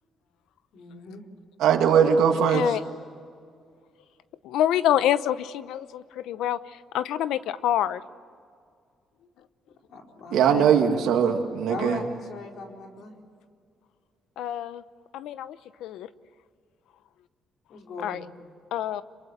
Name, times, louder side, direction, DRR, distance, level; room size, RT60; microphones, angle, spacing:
voice 1, 0.7-1.2 9.2-9.3 9.9-10.9 11.7-13.2 17.7-18.5, left 3 dB, 70° left, 1 dB, 4.5 m, -38 dB
voice 2, 1.6-2.7 10.3-12.0, right 7 dB, 85° right, 3 dB, 2.0 m, -20 dB
voice 3, 2.5-2.8 4.4-6.6 6.9-8.0 14.4-14.8 15.1-16.1 18.0-18.2 18.7-19.0, left 11 dB, 85° left, 14 dB, 0.8 m, -26 dB
27.0 x 23.5 x 8.1 m, 2.2 s
cardioid pair, 90°, 0 cm